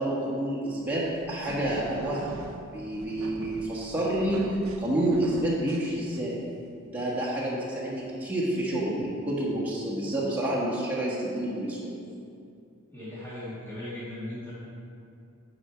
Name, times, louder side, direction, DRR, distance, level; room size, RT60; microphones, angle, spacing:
voice 1, 0.0-2.3 2.7-4.4 4.8-6.4 6.9-11.9, right 1 dB, 10° right, -6 dB, 1.4 m, -29 dB
sound 1, 0.9-6.5, right 3 dB, 75° right, 0.4 m, -42 dB
voice 2, 12.9-14.5, left 1 dB, 10° left, -10 dB, 1.6 m, -38 dB
8.8 x 5.0 x 4.5 m, 2.5 s
head